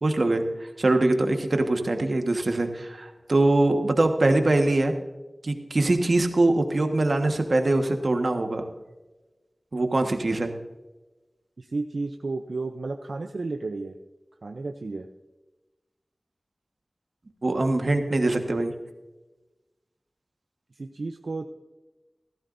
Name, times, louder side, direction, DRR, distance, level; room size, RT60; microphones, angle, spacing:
voice 1, 0.0-4.9 5.4-8.7 9.7-10.5 17.4-18.7, right 2 dB, 70° right, 5 dB, 1.4 m, -23 dB
voice 2, 11.6-14.0 14.4-15.1 20.7-21.4, right 3 dB, 90° right, 5 dB, 0.6 m, -32 dB
16.5 x 14.0 x 2.6 m, 1.1 s
wide cardioid pair, 50°, 0 cm